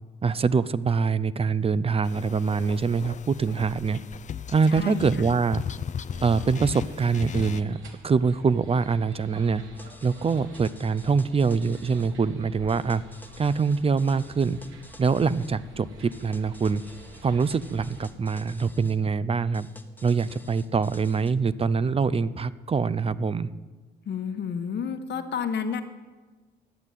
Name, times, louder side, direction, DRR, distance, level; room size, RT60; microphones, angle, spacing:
voice 1, 0.2-4.0 4.5-5.6 6.2-7.8 8.0-9.6 10.0-13.0 13.4-14.6 15.0-16.8 17.2-19.7 20.0-23.5, right 5 dB, 30° right, 16 dB, 0.5 m, -24 dB
sound 1, 2.0-7.6, left 7 dB, 40° left, 0.5 m, -37 dB
voice 2, 4.7-5.1 24.0-25.8, left 7 dB, 60° left, 8 dB, 1.3 m, -30 dB
sound 2, 6.1-18.1, right 1 dB, 75° right, 2.5 m, -48 dB
sound 3, 9.7-12.1 12.7-15.5 16.1-19.0 19.5-21.3, left 1 dB, 10° left, 1.2 m, -51 dB
11.5 x 8.2 x 9.1 m, 1.3 s
cardioid pair, 90°, 20 cm